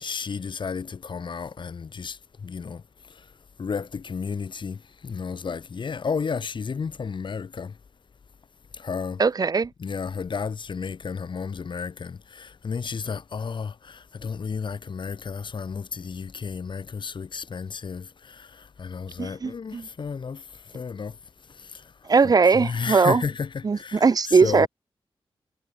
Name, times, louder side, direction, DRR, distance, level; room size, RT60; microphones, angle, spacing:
voice 1, 0.0-7.8 8.7-9.2 9.8-24.7, left 5 dB, 55° left, 4.3 m, -33 dB
voice 2, 9.2-9.7 19.2-19.9 22.1-23.2 23.6-24.7, right 5 dB, 40° right, 1.3 m, -20 dB
wide cardioid pair, 160°, 10 cm